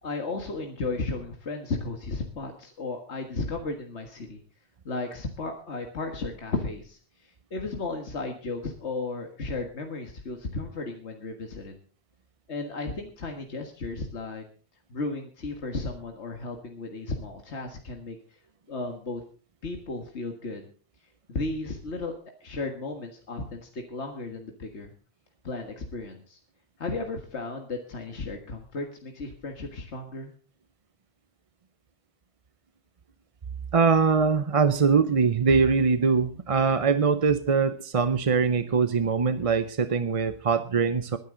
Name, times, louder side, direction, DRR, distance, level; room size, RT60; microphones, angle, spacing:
voice 1, 0.0-4.4 4.9-11.8 12.5-14.4 14.9-18.2 18.7-19.2 19.6-20.7 21.3-24.9 25.4-26.4 26.8-30.3, left 3 dB, 75° left, 3 dB, 2.0 m, -34 dB
voice 2, 33.7-41.2, right 5 dB, 40° right, 12 dB, 0.6 m, -22 dB
20.5 x 10.5 x 3.8 m, 0.40 s
omnidirectional pair, 1.1 m